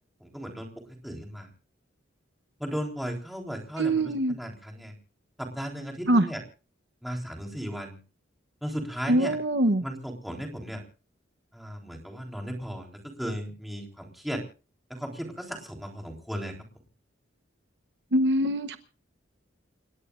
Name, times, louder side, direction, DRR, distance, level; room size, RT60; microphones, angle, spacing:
voice 1, 0.2-0.7 1.0-1.5 2.6-4.9 5.4-6.4 7.0-7.9 8.6-9.4 9.8-10.8 11.5-14.4 14.9-16.5, equal, ahead, 3.6 m, -36 dB
voice 2, 3.8-4.4 6.1-6.3 9.1-9.8 18.1-18.8, right 1 dB, 60° right, 0.9 m, -23 dB
29.0 x 17.0 x 2.5 m
head